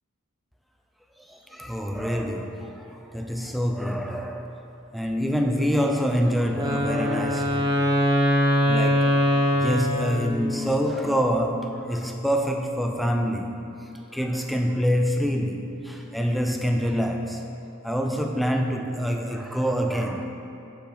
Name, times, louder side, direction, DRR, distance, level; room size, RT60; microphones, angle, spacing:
voice 1, 1.2-4.5 4.9-7.7 8.6-17.5 17.8-20.3, equal, ahead, 3 dB, 0.3 m, -26 dB
Wind instrument woodwind instrument, 6.5-10.7, left 1 dB, 20° right, 1.0 m, -22 dB
6.8 x 5.5 x 4.4 m, 2.8 s
head